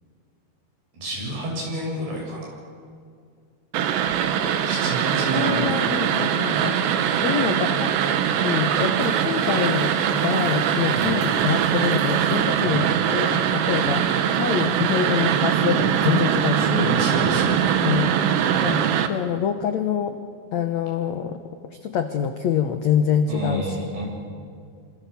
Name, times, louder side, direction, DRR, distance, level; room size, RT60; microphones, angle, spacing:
voice 1, 0.9-2.6 4.6-5.9 10.9-11.1 12.6-12.9 16.8-18.0 23.3-24.0, right 1 dB, 70° right, -2 dB, 9.5 m, -29 dB
sound 1, 3.7-19.1, right 9 dB, 90° right, 3.4 m, -22 dB
voice 2, 5.3-6.8 7.2-7.9 8.4-16.9 17.8-18.1 18.6-20.2 20.5-21.4 21.8-23.9, left 8 dB, 85° left, 7 dB, 1.5 m, -25 dB
Liquid, 8.7-12.9, right 2 dB, 50° right, 9.6 m, -40 dB
26.5 x 26.0 x 7.1 m, 2.2 s
omnidirectional pair, 4.8 m